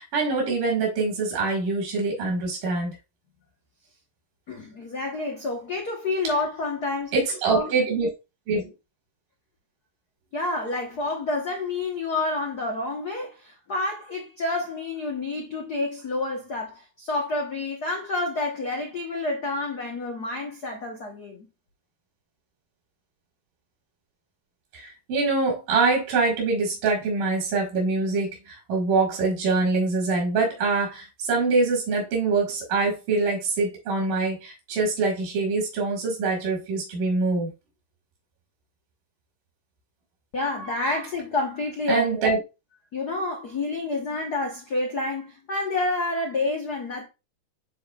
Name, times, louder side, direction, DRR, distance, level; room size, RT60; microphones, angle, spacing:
voice 1, 0.0-3.0 7.1-8.1 8.5-8.7 24.7-37.5 41.9-42.4, right 3 dB, 90° right, 3.5 m, -24 dB
voice 2, 4.5-7.1 7.5-7.7 10.3-21.5 40.3-42.3 42.9-47.1, left 2 dB, 85° left, 0.8 m, -29 dB
10.0 x 4.1 x 2.4 m
omnidirectional pair, 3.6 m